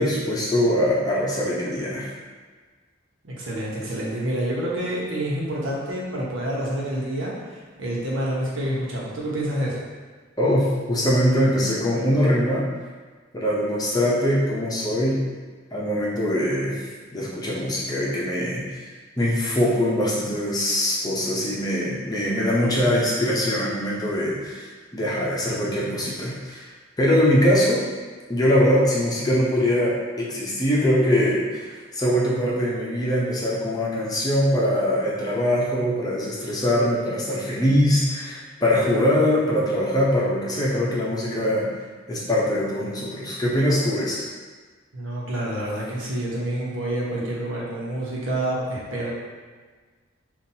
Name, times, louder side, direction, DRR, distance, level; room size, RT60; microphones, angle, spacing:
voice 1, 0.0-2.1 10.4-12.7 13.3-15.2 15.7-16.8 17.1-18.8 19.2-26.7 27.0-27.8 28.3-41.7 42.1-44.2, equal, 20° left, -5 dB, 0.7 m, -22 dB
voice 2, 3.2-9.8 44.9-49.1, right 1 dB, 85° right, -5 dB, 1.1 m, -28 dB
5.7 x 2.6 x 2.8 m, 1.4 s
head